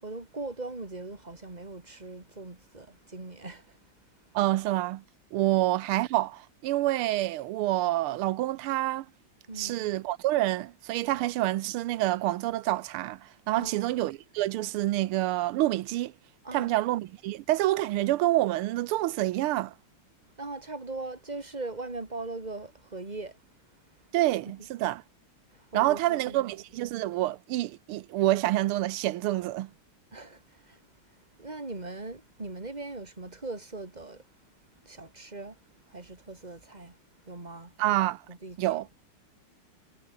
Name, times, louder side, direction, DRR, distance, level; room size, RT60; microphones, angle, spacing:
voice 1, 0.0-3.8 9.5-9.9 13.6-13.9 16.4-16.7 20.4-23.4 25.5-26.5 30.1-30.8 31.4-34.2 34.8-35.6 35.9-37.0 37.3-37.7 38.3-38.6, right 2 dB, 20° right, 2.9 m, -40 dB
voice 2, 4.3-5.0 5.3-9.1 9.6-16.1 16.5-19.7 24.1-25.0 25.7-29.7 37.8-38.2 38.6-38.9, right 15 dB, 80° right, 1.6 m, -27 dB
omnidirectional pair, 2.4 m